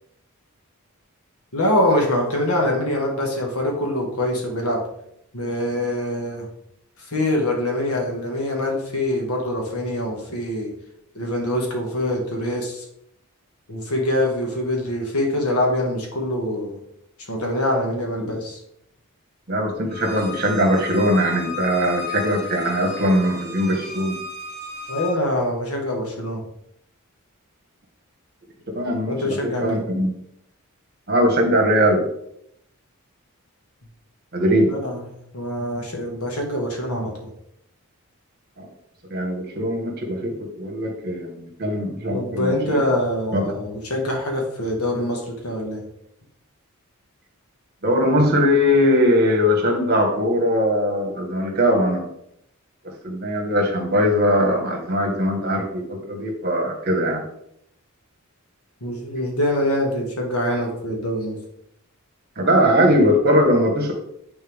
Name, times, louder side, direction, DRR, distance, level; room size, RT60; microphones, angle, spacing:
voice 1, 1.5-4.9 5.3-6.5 7.0-10.7 11.2-12.8 13.7-16.8 17.3-18.6 24.9-26.4 29.1-29.8 34.7-37.3 42.1-45.9 58.8-61.4, left 1 dB, 85° left, 1 dB, 1.9 m, -24 dB
voice 2, 19.5-24.2 28.7-29.2 29.4-30.1 31.1-32.0 34.3-34.8 38.6-38.7 39.1-42.8 43.3-43.5 47.8-52.1 52.8-57.2 62.4-63.9, equal, 45° right, 2 dB, 1.7 m, -20 dB
Bowed string instrument, 19.9-25.1, left 4 dB, 30° left, 2.1 m, -34 dB
9.0 x 4.6 x 3.6 m, 0.74 s
head